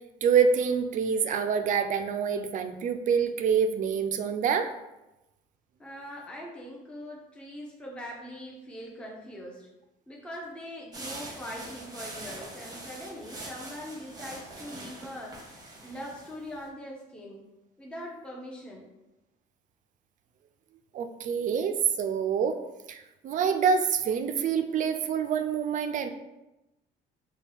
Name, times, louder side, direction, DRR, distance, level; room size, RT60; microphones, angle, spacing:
voice 1, 0.2-4.7 20.9-22.6 22.9-26.1, right 6 dB, 50° right, 9 dB, 0.4 m, -26 dB
voice 2, 5.8-9.7 10.1-17.5 17.8-18.9, equal, 5° left, -3 dB, 0.7 m, -42 dB
sound 1, 10.9-16.7, right 2 dB, 25° right, 0.9 m, -43 dB
4.1 x 2.2 x 3.4 m, 0.96 s
cardioid pair, 110°, 17 cm